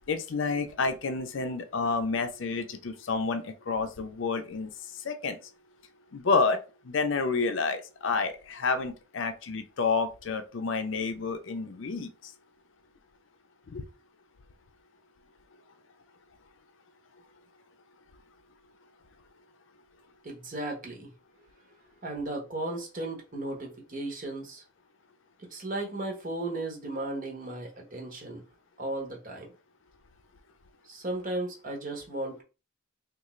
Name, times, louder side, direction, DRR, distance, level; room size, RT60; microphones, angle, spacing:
voice 1, 0.1-4.7 5.0-5.4 6.1-6.6 6.8-12.1 13.7-13.8, left 4 dB, 65° left, 0.5 m, -29 dB
voice 2, 20.2-21.1 22.0-24.6 25.4-28.4 28.8-29.5 30.8-32.4, right 2 dB, 40° right, 1.0 m, -35 dB
3.7 x 2.4 x 3.1 m
head